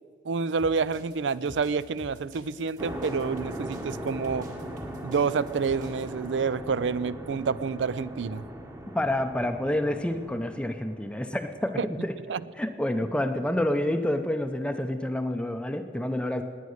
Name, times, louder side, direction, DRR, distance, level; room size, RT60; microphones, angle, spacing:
voice 1, 0.2-4.5 5.0-8.4 11.8-11.9 12.3-12.4, right 5 dB, 85° right, 18 dB, 0.4 m, -28 dB
sound 1, 0.6-6.0, equal, 45° right, 2.6 m, -47 dB
sound 2, 2.8-11.8, right 1 dB, 15° right, 1.0 m, -39 dB
voice 2, 8.9-12.1 12.6-16.4, left 1 dB, 5° left, 7 dB, 0.5 m, -28 dB
19.0 x 9.5 x 6.5 m, 2.4 s
head